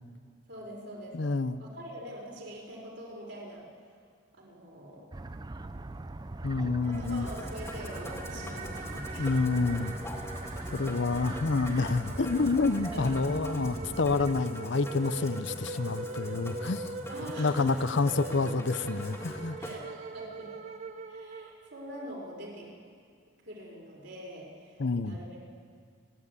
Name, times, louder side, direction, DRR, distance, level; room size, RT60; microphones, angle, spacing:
voice 1, 0.5-1.2 1.6-3.7 4.3-5.1 6.5-9.3 12.9-13.2 17.1-18.0 19.6-20.5 21.1-22.7 23.4-25.4, equal, 60° right, -2 dB, 4.8 m, -44 dB
voice 2, 1.1-1.6 6.4-7.3 9.2-10.0 10.7-16.9 17.4-19.6 24.8-25.2, left 3 dB, 60° left, 13 dB, 0.6 m, -28 dB
sound 1, 5.1-14.5, right 2 dB, 20° right, 0.5 m, -41 dB
sound 2, 6.8-22.1, right 3 dB, 35° right, 1.0 m, -43 dB
Musical instrument, 6.9-19.8, left 1 dB, 15° left, 2.2 m, -43 dB
29.5 x 11.0 x 8.3 m, 2.1 s
head